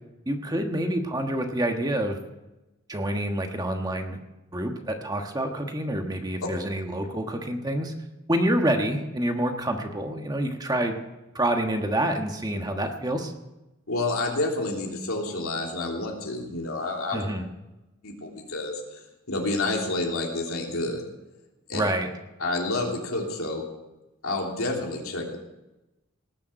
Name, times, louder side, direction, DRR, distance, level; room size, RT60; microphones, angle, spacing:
voice 1, 0.3-2.2 2.9-4.2 4.5-7.9 8.3-11.0 11.3-13.3 17.1-17.5 21.7-22.1, right 1 dB, 20° right, 4 dB, 1.3 m, -27 dB
voice 2, 13.9-17.2 18.0-19.0 19.3-21.0 21.7-21.8 22.4-23.6 24.2-25.4, left 2 dB, 90° left, 0 dB, 3.2 m, -29 dB
19.0 x 7.0 x 7.9 m, 0.99 s
head